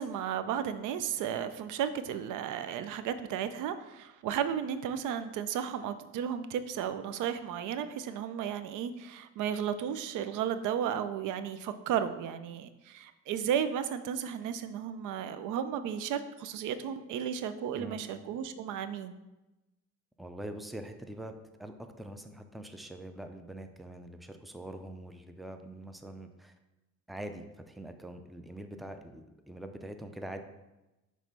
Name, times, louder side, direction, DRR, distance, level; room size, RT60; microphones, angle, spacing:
voice 1, 0.0-19.2, right 8 dB, 85° right, 11 dB, 0.5 m, -34 dB
voice 2, 20.2-21.3 21.6-26.5 27.1-30.4, right 1 dB, ahead, 7 dB, 0.5 m, -44 dB
5.9 x 3.1 x 5.2 m, 1.0 s
cardioid pair, 90°, 30 cm